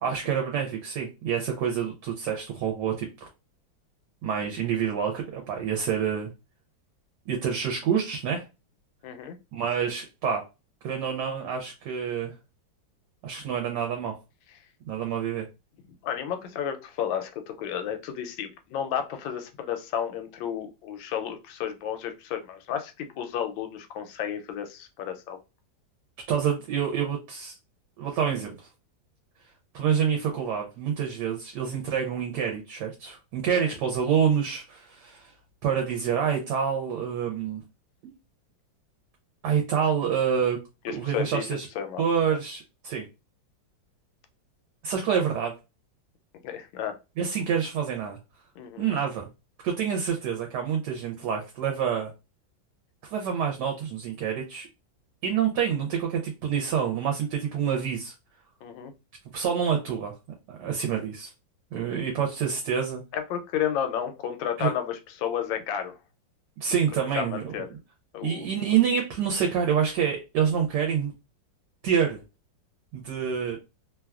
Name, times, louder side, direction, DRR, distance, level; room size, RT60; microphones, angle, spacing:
voice 1, 0.0-3.1 4.2-6.3 7.3-8.4 9.5-10.4 10.8-12.3 13.2-14.1 14.9-15.5 26.3-27.5 28.0-28.7 29.7-35.3 35.6-37.6 38.0-38.1 39.4-40.6 40.9-41.7 42.0-43.0 44.8-45.5 47.2-48.2 48.8-49.3 49.6-52.1 53.0-54.7 55.2-58.1 59.3-60.1 60.5-61.3 61.7-63.0 64.6-64.7 66.6-67.5 68.2-71.1 71.8-72.2 72.9-73.6, right 7 dB, 70° right, 1 dB, 1.1 m, -27 dB
voice 2, 9.0-9.4 16.0-25.4 33.5-33.6 40.8-41.4 41.8-42.4 46.4-47.0 48.6-48.9 58.6-58.9 63.1-66.0 67.2-67.7 68.1-68.5, left 9 dB, 85° left, 7 dB, 1.3 m, -32 dB
3.0 x 2.2 x 2.3 m, 0.27 s
omnidirectional pair, 2.0 m